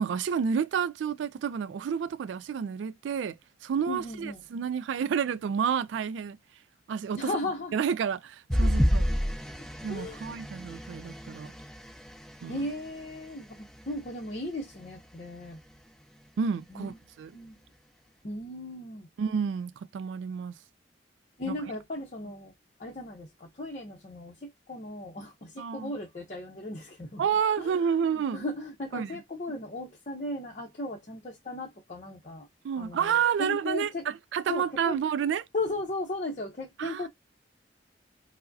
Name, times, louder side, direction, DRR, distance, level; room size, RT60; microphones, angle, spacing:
voice 1, 0.0-3.4 3.6-6.4 6.9-7.3 7.7-9.1 9.8-11.5 12.4-12.7 16.4-17.3 19.2-20.5 21.5-21.6 25.6-25.9 27.2-28.4 28.9-29.1 32.6-35.4 36.8-37.1, right 7 dB, 90° right, 0.3 m, -30 dB
voice 2, 3.9-4.4 7.2-7.7 8.6-8.7 9.9-10.2 12.5-15.6 16.7-17.0 17.3-17.6 18.2-19.1 21.4-22.5 22.8-27.3 27.6-32.5 32.8-34.0 34.5-35.0 35.5-37.1, left 2 dB, 40° left, 0.7 m, -36 dB
sound 1, 8.5-13.2 13.8-14.0 14.4-14.5, equal, ahead, 0.7 m, -29 dB
4.7 x 2.1 x 2.6 m
head